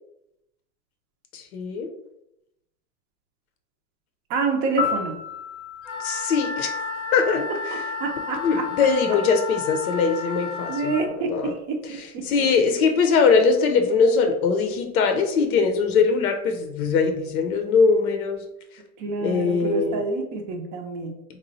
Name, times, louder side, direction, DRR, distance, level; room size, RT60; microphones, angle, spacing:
voice 1, 1.3-1.9 6.0-6.7 7.1-7.5 8.4-10.9 11.3-11.5 12.3-18.4 19.2-20.0, left 5 dB, 70° left, 5 dB, 0.7 m, -21 dB
voice 2, 4.3-5.1 8.0-8.6 10.7-12.2 19.0-21.1, right 3 dB, 30° right, 2 dB, 0.5 m, -27 dB
Piano, 4.8-7.7 15.8-16.0, left 6 dB, 5° left, 0.9 m, -33 dB
Wind instrument woodwind instrument, 5.8-11.0, left 5 dB, 35° left, 0.5 m, -32 dB
3.0 x 2.2 x 3.9 m, 0.84 s
hypercardioid pair, 140°, 44 cm